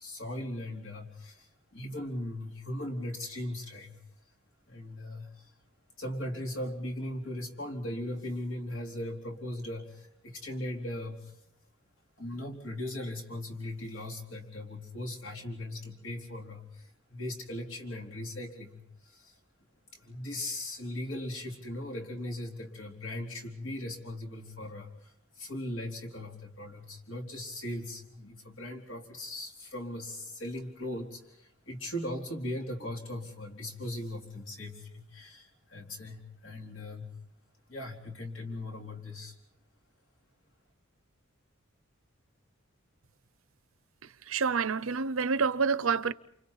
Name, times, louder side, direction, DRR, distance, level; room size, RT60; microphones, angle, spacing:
voice 1, 0.0-4.0 4.7-5.5 6.0-11.3 12.2-19.4 19.9-37.1 37.7-39.4, left 1 dB, 65° left, 4.0 m, -39 dB
voice 2, 44.3-46.1, right 5 dB, 75° right, 0.8 m, -28 dB
29.0 x 28.5 x 4.1 m
head